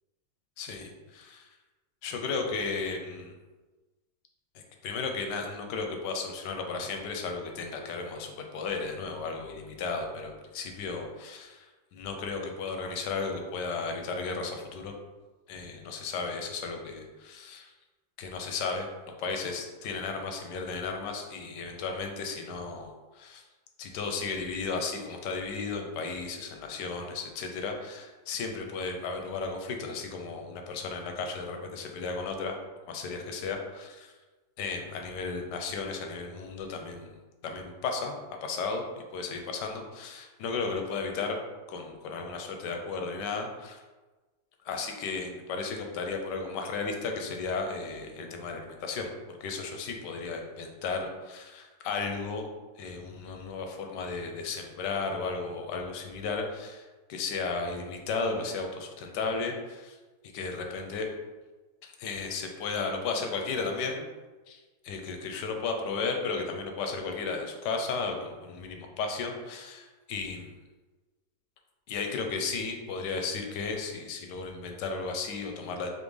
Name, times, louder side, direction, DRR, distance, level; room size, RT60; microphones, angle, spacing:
voice 1, 0.6-1.5 2.0-3.3 4.5-11.7 11.9-14.9 15.5-17.7 18.2-18.9 19.2-23.4 23.8-32.6 32.9-34.1 34.6-37.1 37.4-38.1 38.4-41.4 41.7-43.8 44.6-52.5 52.8-60.0 60.2-61.1 61.8-64.0 64.5-70.5 71.9-75.9, left 4 dB, 90° left, 3 dB, 1.2 m, -34 dB
4.3 x 2.9 x 3.2 m, 1.2 s
omnidirectional pair, 1.8 m